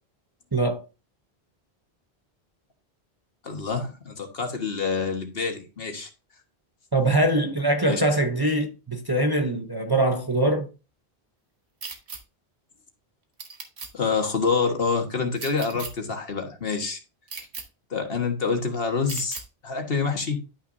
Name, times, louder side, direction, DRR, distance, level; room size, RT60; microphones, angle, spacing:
voice 1, 0.5-0.8 6.9-10.7, right 1 dB, 25° right, 0.7 m, -23 dB
voice 2, 3.4-6.1 7.8-8.0 13.9-17.0 17.9-20.4, left 5 dB, 65° left, 1.6 m, -27 dB
sound 1, 11.8-12.2 13.4-13.9 15.4-15.9 17.3-17.6 19.1-19.4, right 4 dB, 90° right, 1.5 m, -36 dB
11.5 x 5.8 x 2.6 m
omnidirectional pair, 1.1 m